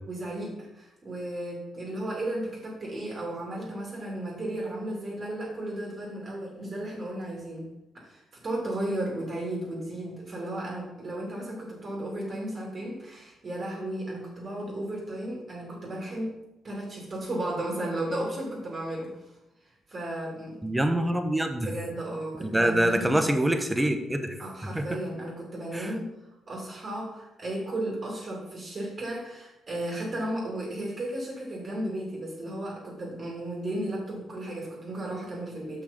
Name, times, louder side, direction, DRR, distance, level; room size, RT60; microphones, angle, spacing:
voice 1, 0.1-7.7 8.0-16.3 16.6-19.3 19.9-20.6 21.6-23.2 24.4-26.1 26.5-35.8, right 1 dB, 40° right, -3 dB, 2.7 m, -34 dB
voice 2, 20.6-21.7 22.5-24.4 24.7-24.9 25.7-25.9, right 1 dB, 10° right, 7 dB, 1.0 m, -25 dB
7.0 x 5.7 x 5.2 m, 0.95 s
cardioid pair, 90°, 0 cm